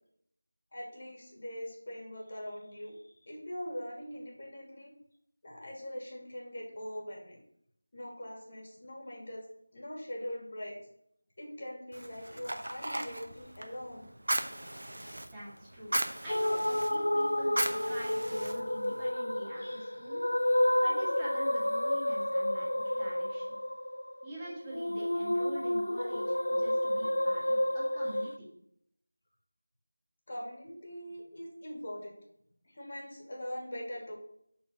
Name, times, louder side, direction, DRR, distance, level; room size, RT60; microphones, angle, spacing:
voice 1, 0.7-4.9 5.4-7.4 7.9-9.4 9.7-10.8 11.4-14.1 19.6-19.7 22.8-23.0 30.3-32.2 32.6-34.2, equal, 45° left, -2 dB, 2.5 m, -42 dB
Fire, 11.9-19.1, right 1 dB, 75° right, 0.9 m, -37 dB
voice 2, 15.3-15.9 16.2-20.2 20.8-23.5 24.2-28.5, equal, 10° right, -10 dB, 2.0 m, -45 dB
sound 1, 16.3-28.4, left 1 dB, 85° left, 0.3 m, -30 dB
6.1 x 4.4 x 5.7 m, 0.71 s
figure-of-eight pair, 170°, 0 cm